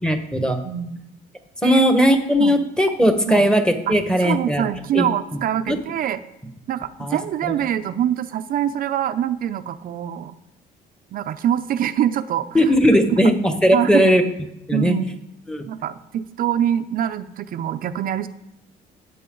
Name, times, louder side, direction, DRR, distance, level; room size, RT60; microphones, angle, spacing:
voice 1, 0.0-0.6 1.6-4.6 4.9-5.1 5.7-5.8 7.0-7.2 7.5-7.6 12.5-14.2 14.7-14.9 15.5-15.6, equal, 5° left, 6 dB, 1.4 m, -18 dB
voice 2, 0.6-1.0 1.6-1.8 2.4-2.6 3.3-3.5 3.9-6.2 6.7-10.4 11.1-12.7 13.1-13.3 13.7-14.2 14.7-15.1 15.7-18.3, right 10 dB, 55° right, 10 dB, 0.6 m, -24 dB
13.5 x 8.5 x 3.9 m, 0.87 s
cardioid pair, 110°, 17 cm